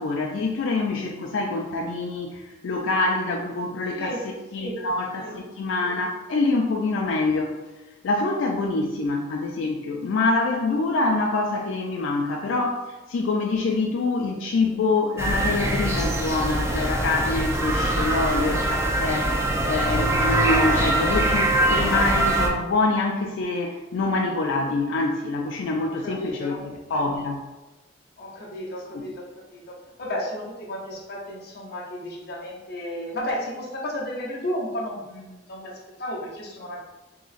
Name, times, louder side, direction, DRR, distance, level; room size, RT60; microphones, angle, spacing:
voice 1, 0.0-7.6 8.0-27.4 28.9-29.1, left 3 dB, 90° left, 1 dB, 0.4 m, -25 dB
sound 1, 15.2-22.5, right 1 dB, 15° right, 0.4 m, -23 dB
voice 2, 25.8-26.6 28.2-29.2 29.5-36.8, left 1 dB, 55° left, -3 dB, 0.8 m, -33 dB
3.7 x 2.9 x 2.5 m, 1.1 s
head